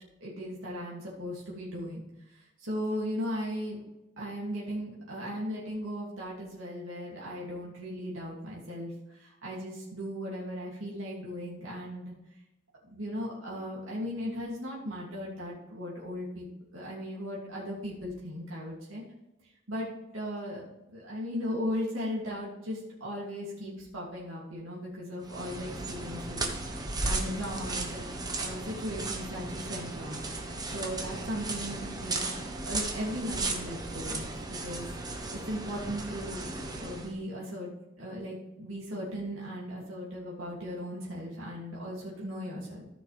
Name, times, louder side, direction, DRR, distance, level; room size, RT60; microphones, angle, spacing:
voice 1, 0.2-2.0 2.3-3.8 4.2-12.1 12.8-16.5 16.7-19.0 19.7-20.6 20.9-26.5 27.0-30.2 30.7-32.3 32.6-34.3 34.6-37.7 38.0-42.8, equal, 80° right, -5 dB, 2.6 m, -37 dB
sound 1, 25.2-37.1, right 2 dB, 20° right, 1.2 m, -35 dB
14.0 x 6.1 x 3.5 m, 0.93 s
head